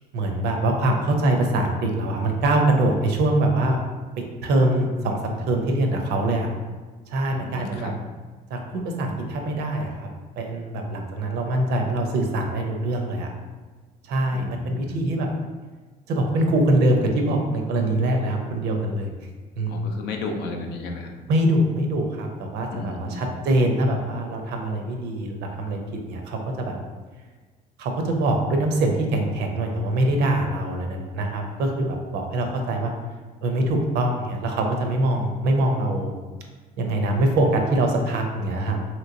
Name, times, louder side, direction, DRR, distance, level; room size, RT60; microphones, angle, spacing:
voice 1, 0.1-3.8 4.4-6.5 7.1-7.9 8.5-9.9 10.4-13.3 14.1-15.3 16.1-19.1 19.6-19.8 21.3-25.8 26.1-26.8 27.8-32.9 33.4-36.1 36.8-38.8, right 1 dB, 75° right, 3 dB, 0.6 m, -23 dB
voice 2, 7.3-8.0 14.3-15.0 19.7-21.1 22.7-23.2, left 2 dB, 80° left, 3 dB, 0.5 m, -33 dB
3.1 x 3.0 x 2.6 m, 1.4 s
cardioid pair, 110°, 17 cm